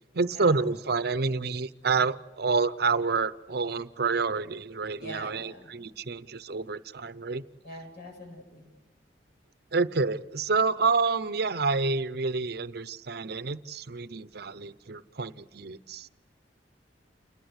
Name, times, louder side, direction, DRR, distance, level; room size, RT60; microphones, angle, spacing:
voice 1, 0.1-7.4 9.7-16.1, right 4 dB, 65° right, 16 dB, 0.8 m, -28 dB
voice 2, 5.0-5.7 7.6-8.7, equal, 65° left, 2 dB, 8.0 m, -44 dB
29.0 x 20.0 x 8.1 m, 1.1 s
head